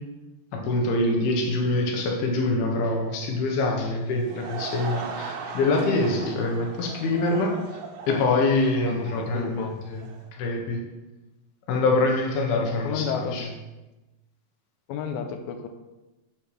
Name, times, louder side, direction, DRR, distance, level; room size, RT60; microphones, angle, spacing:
voice 1, 0.5-7.5 8.1-10.0 10.4-10.8 11.7-13.5, left 2 dB, 70° left, 1 dB, 2.9 m, -25 dB
Laughter / Crowd, 4.0-10.3, right 5 dB, 80° right, 2.5 m, -38 dB
voice 2, 8.9-9.7 12.9-13.4 14.9-15.7, left 6 dB, 85° left, 5 dB, 2.1 m, -32 dB
8.3 x 6.7 x 3.2 m, 1.1 s
omnidirectional pair, 4.8 m